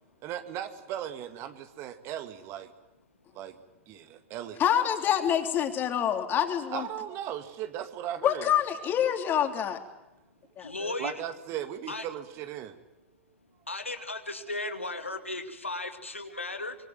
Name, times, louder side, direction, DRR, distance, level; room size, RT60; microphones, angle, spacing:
voice 1, 0.2-2.7 3.3-3.6 3.9-4.6 6.7-8.5 10.8-12.8, right 11 dB, 40° right, 9 dB, 2.4 m, -37 dB
voice 2, 4.6-6.9 8.2-9.8 10.6-10.7, left 9 dB, 30° left, 6 dB, 3.6 m, -26 dB
voice 3, 10.6-11.1 11.9-12.1 13.7-16.8, left 2 dB, 85° left, 6 dB, 2.5 m, -35 dB
24.5 x 24.5 x 9.3 m, 0.95 s
figure-of-eight pair, 95°, 7 cm